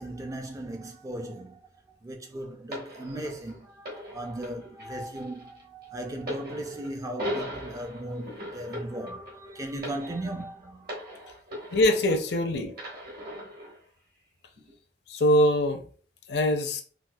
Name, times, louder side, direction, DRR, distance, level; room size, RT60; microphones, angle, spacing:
voice 1, 0.0-11.4 12.5-13.3, right 1 dB, 20° right, 0.4 m, -38 dB
sound 1, 2.7-12.4 12.7-13.8 14.6-14.7, equal, 55° right, 1.2 m, -39 dB
voice 2, 11.7-12.7 15.1-15.8 16.3-16.8, left 1 dB, 65° left, 0.5 m, -23 dB
4.1 x 2.3 x 2.2 m
head